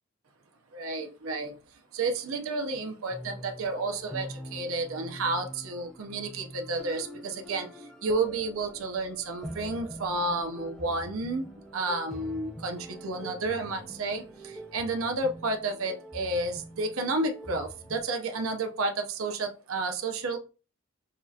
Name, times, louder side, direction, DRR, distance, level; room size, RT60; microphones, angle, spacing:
voice 1, 0.7-1.6 1.9-7.7 8.0-20.4, right 2 dB, 75° right, 0.7 m, -31 dB
sound 1, 3.1-18.0, equal, ahead, 0.6 m, -45 dB
6.7 x 2.4 x 2.7 m
head